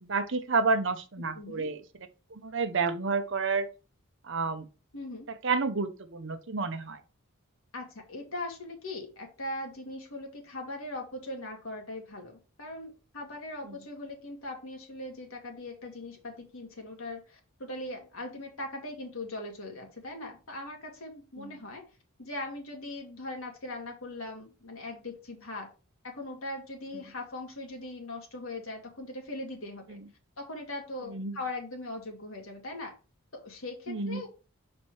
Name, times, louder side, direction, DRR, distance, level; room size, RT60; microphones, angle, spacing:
voice 1, 0.0-1.8 2.3-3.7 4.2-4.7 5.4-7.0 21.4-21.5 31.1-31.3 33.9-34.2, right 4 dB, 55° right, 0.8 m, -30 dB
voice 2, 1.3-1.7 4.9-5.3 7.7-21.8 22.2-25.7 26.0-30.0 30.4-32.9 33.3-34.3, left 2 dB, 70° left, 1.9 m, -40 dB
5.9 x 4.3 x 4.7 m
head